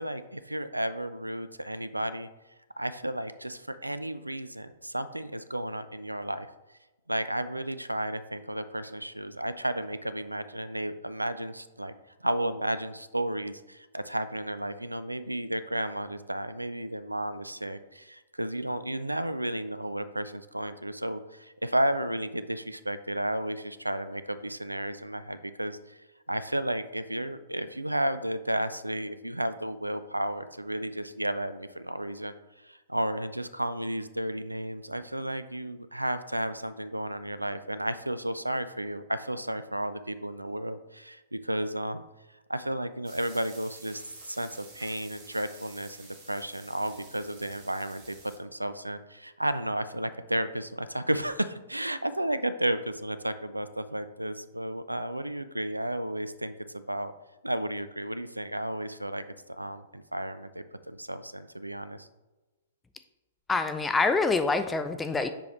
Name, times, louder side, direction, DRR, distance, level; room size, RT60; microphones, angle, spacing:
voice 1, 0.0-2.3 2.8-6.5 7.1-11.9 12.2-26.0 26.3-32.3 32.6-42.0 42.5-57.1 57.4-59.2 59.6-62.1, right 1 dB, 85° right, 13 dB, 0.3 m, -33 dB
sound 1, 43.0-48.4, right 4 dB, 35° right, 1.6 m, -50 dB
voice 2, 63.5-65.3, left 3 dB, 10° left, 9 dB, 0.3 m, -26 dB
6.8 x 5.1 x 3.0 m, 1.1 s
figure-of-eight pair, 110°, 0 cm